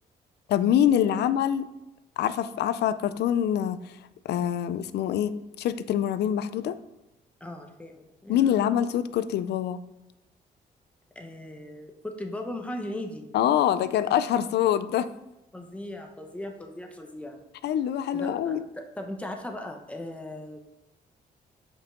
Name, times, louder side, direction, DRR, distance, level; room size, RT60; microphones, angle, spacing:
voice 1, 0.5-1.7 2.2-3.8 4.3-6.8 8.3-9.8 13.3-15.1 17.6-18.6, left 10 dB, 80° left, 14 dB, 0.4 m, -25 dB
voice 2, 7.4-8.6 11.1-13.3 15.5-17.4 18.1-20.6, left 1 dB, 5° left, 3 dB, 1.0 m, -38 dB
7.2 x 5.4 x 3.8 m, 0.94 s
cardioid pair, 85°, 17 cm